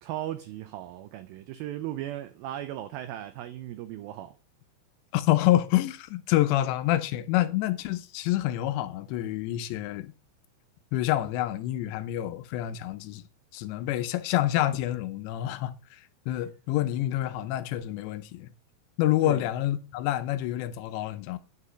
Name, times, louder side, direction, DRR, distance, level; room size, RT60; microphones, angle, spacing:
voice 1, 0.0-4.4 19.2-19.5, right 13 dB, 90° right, 2.1 m, -37 dB
voice 2, 5.1-10.1 10.9-13.2 13.5-16.0 16.3-18.5 19.0-21.4, left 14 dB, 90° left, 3.0 m, -27 dB
9.7 x 4.9 x 5.6 m
omnidirectional pair, 4.9 m